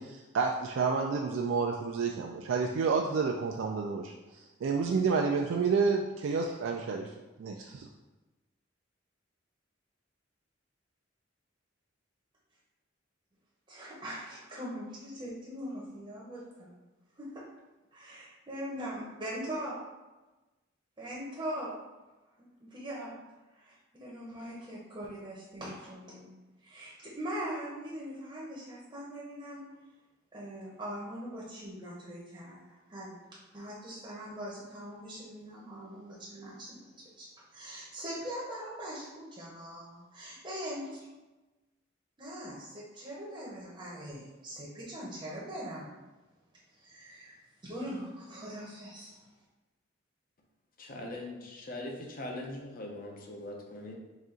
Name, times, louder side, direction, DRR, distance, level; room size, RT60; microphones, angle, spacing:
voice 1, 0.0-4.1 4.6-7.1 7.4-7.9, right 5 dB, 80° right, 1 dB, 0.3 m, -29 dB
voice 2, 13.7-16.7 17.2-17.4 17.9-19.8 21.0-21.7 22.4-23.2 23.5-26.3 26.6-29.6 30.3-33.2 33.5-36.9 37.2-41.1 42.2-45.9 46.7-49.2, equal, 25° right, -6 dB, 0.7 m, -41 dB
voice 3, 50.8-54.0, left 1 dB, 50° left, 0 dB, 0.7 m, -41 dB
4.2 x 2.4 x 3.7 m, 1.1 s
head